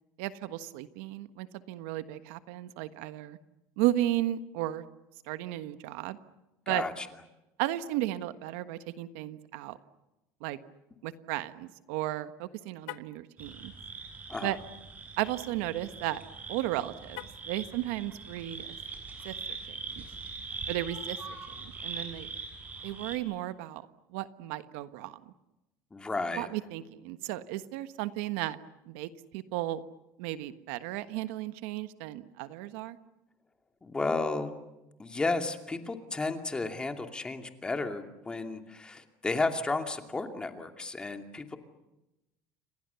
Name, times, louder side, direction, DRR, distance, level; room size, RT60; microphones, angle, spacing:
voice 1, 0.2-3.4 3.8-4.8 5.3-6.2 6.7-6.8 7.6-9.8 10.4-10.6 11.0-13.7 14.4-14.6 15.2-16.2 16.5-18.7 19.2-19.3 19.7-20.0 20.7-21.2 21.5-22.3 22.8-23.8 24.1-25.2 26.4-28.6 28.9-29.8 30.2-33.0, right 15 dB, 90° right, 11 dB, 1.4 m, -34 dB
voice 2, 6.7-7.1 14.3-14.5 25.9-26.5 33.8-34.5 35.0-41.6, left 3 dB, 15° left, 5 dB, 2.6 m, -33 dB
Car, 12.8-13.2 17.1-17.6, left 18 dB, 85° left, 1.1 m, -44 dB
sound 1, 13.4-23.2, right 4 dB, 25° right, 7.1 m, -42 dB
29.5 x 25.0 x 7.1 m, 0.95 s
cardioid pair, 145°, 7 cm